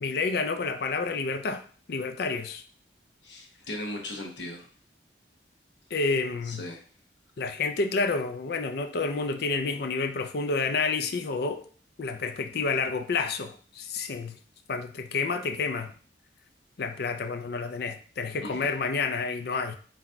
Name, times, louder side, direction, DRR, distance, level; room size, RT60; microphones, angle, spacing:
voice 1, 0.0-2.6 5.9-6.6 7.4-11.6 12.0-14.4 14.7-15.9 16.8-19.8, left 4 dB, 60° left, 0.5 m, -29 dB
voice 2, 3.2-4.7 6.5-6.8 18.4-18.7, left 1 dB, 85° left, 0.9 m, -38 dB
4.0 x 2.3 x 4.4 m
head